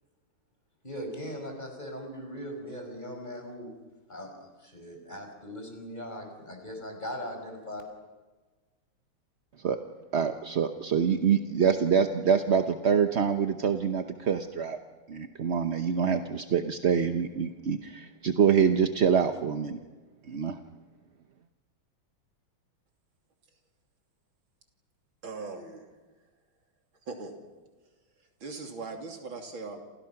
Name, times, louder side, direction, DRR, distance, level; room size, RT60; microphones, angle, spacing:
voice 1, 0.8-3.7 4.1-7.8, equal, 20° left, 4 dB, 5.4 m, -39 dB
voice 2, 10.1-14.8 15.1-19.8 20.3-20.6, right 7 dB, 45° right, 6 dB, 0.9 m, -25 dB
voice 3, 25.2-25.9 27.1-27.3 28.4-29.8, right 3 dB, 75° right, 3 dB, 3.7 m, -39 dB
28.5 x 28.5 x 5.9 m, 1.3 s
omnidirectional pair, 2.2 m